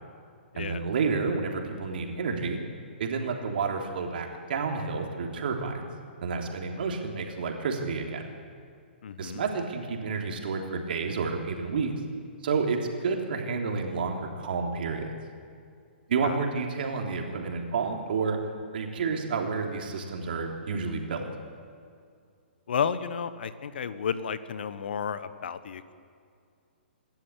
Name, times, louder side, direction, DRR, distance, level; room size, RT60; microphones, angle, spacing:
voice 1, 0.6-2.6 3.0-5.9 6.2-8.2 9.2-11.9 12.4-15.1 16.1-18.4 18.7-21.2, right 4 dB, 60° right, 2 dB, 3.4 m, -30 dB
voice 2, 9.0-9.4 16.2-16.4 22.7-25.9, left 7 dB, 60° left, 13 dB, 1.3 m, -32 dB
26.5 x 13.0 x 8.5 m, 2.3 s
figure-of-eight pair, 125°, 6 cm